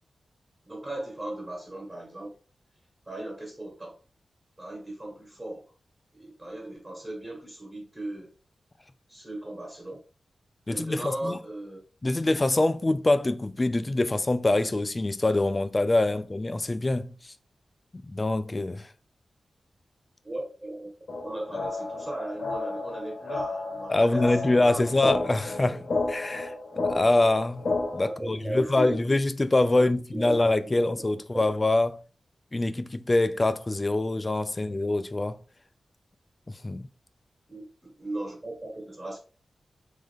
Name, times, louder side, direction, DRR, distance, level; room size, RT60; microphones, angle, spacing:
voice 1, 0.6-2.4 3.0-4.0 4.6-5.7 6.1-8.3 9.1-10.0 10.7-11.8 20.2-20.9 21.2-25.0 25.5-25.8 28.0-28.9 29.7-30.4 30.9-31.0 31.3-31.5 37.5-39.2, right 1 dB, 20° right, 1.4 m, -37 dB
voice 2, 10.7-11.4 12.0-17.3 17.9-18.9 23.9-26.5 26.8-32.0 32.5-35.4 36.6-36.9, left 2 dB, 25° left, 0.3 m, -25 dB
sound 1, 21.1-28.1, left 3 dB, 65° left, 0.9 m, -32 dB
3.6 x 3.2 x 3.4 m
wide cardioid pair, 115°, 0 cm